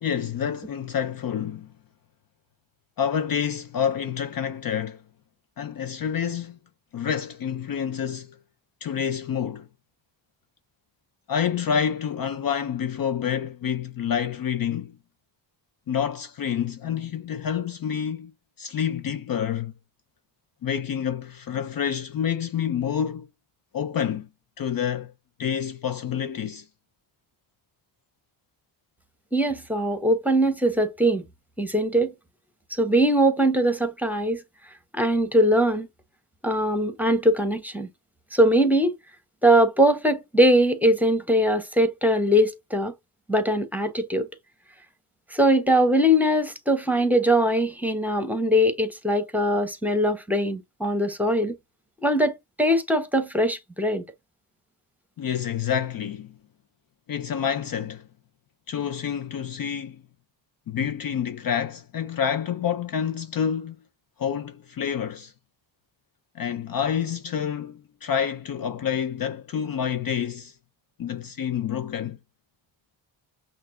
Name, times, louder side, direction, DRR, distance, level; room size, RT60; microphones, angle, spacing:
voice 1, 0.0-1.7 3.0-5.0 5.6-6.6 6.9-8.4 8.8-9.7 11.3-14.9 15.9-18.3 18.6-19.7 20.6-23.3 23.7-24.3 24.6-25.1 25.4-26.7 55.2-56.3 57.1-58.0 58.7-60.0 60.7-63.8 64.2-65.3 66.3-70.5 71.0-72.2, left 8 dB, 50° left, 0.5 m, -28 dB
voice 2, 29.3-31.2 31.6-32.1 32.7-34.4 34.9-35.9 36.4-37.9 38.3-39.0 39.4-42.9 43.3-44.3 45.3-51.6 52.0-54.0, equal, 5° right, 1.1 m, -21 dB
5.7 x 2.5 x 2.6 m
cardioid pair, 70°, 47 cm